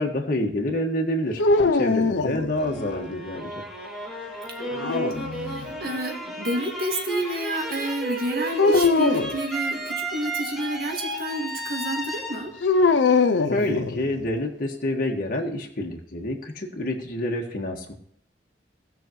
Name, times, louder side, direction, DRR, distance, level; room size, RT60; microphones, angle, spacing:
voice 1, 0.0-1.4 1.8-3.6 13.5-17.9, left 1 dB, 50° left, 0 dB, 1.7 m, -27 dB
sound 1, 1.4-3.0 4.6-5.7 8.6-9.4 12.6-14.3, left 4 dB, 80° left, 0.6 m, -22 dB
sound 2, 2.6-13.6, right 1 dB, ahead, 2.0 m, -33 dB
voice 2, 4.8-12.5, right 1 dB, 55° right, 2 dB, 2.1 m, -30 dB
18.0 x 6.4 x 3.1 m, 0.66 s
head